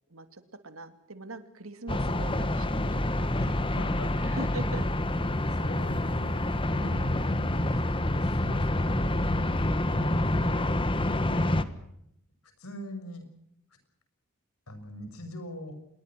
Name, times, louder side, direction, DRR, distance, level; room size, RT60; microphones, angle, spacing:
voice 1, 0.1-2.9 3.2-3.3 4.2-4.8 6.8-7.1, right 2 dB, 70° right, 9 dB, 2.7 m, -41 dB
sound 1, 1.9-11.6, left 1 dB, 25° left, 1.4 m, -27 dB
voice 2, 3.4-4.4 5.5-7.9 8.2-9.3 9.8-10.5 11.1-11.6 12.6-13.3 14.7-15.8, left 1 dB, 90° left, 9 dB, 6.2 m, -41 dB
27.0 x 21.5 x 6.1 m, 0.77 s
head